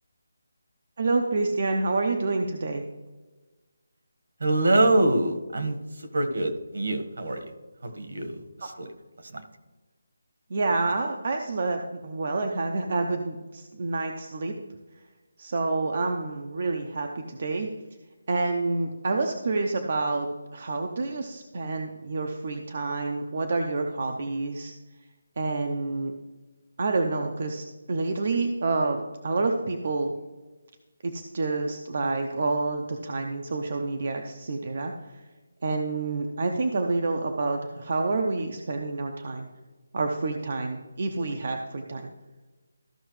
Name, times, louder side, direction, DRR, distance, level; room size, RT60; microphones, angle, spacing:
voice 1, 1.0-2.8 10.5-14.5 15.4-17.7 18.3-20.3 20.5-24.7 25.4-26.1 26.8-30.1 31.0-35.1 35.6-39.5 39.9-42.1, right 3 dB, 35° right, 3 dB, 0.6 m, -28 dB
voice 2, 4.4-7.4 7.8-8.9 9.2-9.4, right 1 dB, 60° right, 6 dB, 1.3 m, -25 dB
14.0 x 5.7 x 3.1 m, 1.2 s
hypercardioid pair, 180°, 0 cm